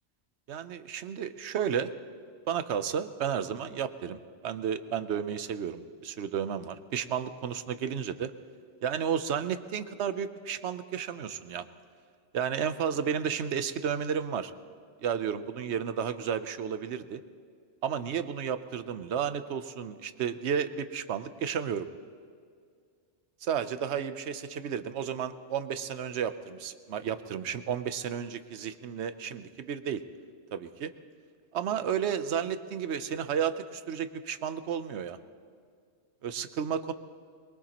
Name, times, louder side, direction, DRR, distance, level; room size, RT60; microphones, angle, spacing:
voice 1, 0.5-1.9 2.5-8.3 8.8-11.6 12.3-14.5 15.0-17.2 17.8-21.9 23.4-30.0 30.5-30.9 31.5-35.2 36.2-36.9, right 8 dB, 70° right, 11 dB, 1.0 m, -32 dB
22.5 x 22.0 x 3.0 m, 2.2 s
omnidirectional pair, 1.2 m